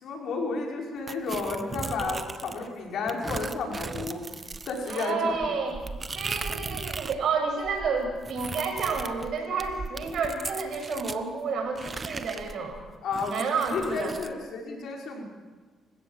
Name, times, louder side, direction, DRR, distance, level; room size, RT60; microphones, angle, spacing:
voice 1, 0.0-4.2 4.7-5.5 13.0-15.2, left 4 dB, 70° left, 0 dB, 5.7 m, -32 dB
sound 1, 1.1-2.7 3.1-7.2 7.5-11.2 11.7-14.3, right 4 dB, 30° right, 1.2 m, -38 dB
voice 2, 4.9-5.8 6.1-12.8 13.3-14.1, right 5 dB, 65° right, 3 dB, 6.8 m, -30 dB
28.0 x 16.0 x 7.6 m, 1.4 s
cardioid pair, 90°, 0 cm